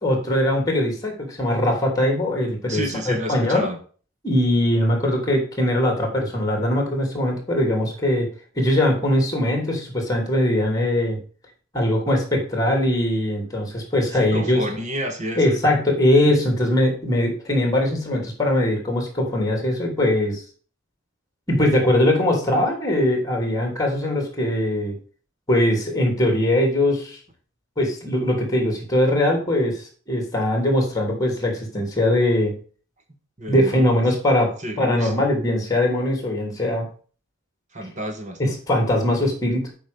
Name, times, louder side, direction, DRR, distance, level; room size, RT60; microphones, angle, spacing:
voice 1, 0.0-3.7 4.2-8.3 8.5-11.2 11.7-14.6 15.4-20.4 21.5-24.9 25.5-27.2 27.8-32.5 33.5-36.8 38.4-39.7, left 1 dB, 15° left, 2 dB, 3.1 m, -21 dB
voice 2, 2.7-3.8 14.2-15.5 33.4-33.8 34.6-35.1 37.7-38.4, equal, 35° right, 5 dB, 1.6 m, -30 dB
8.0 x 5.2 x 6.9 m, 0.41 s
head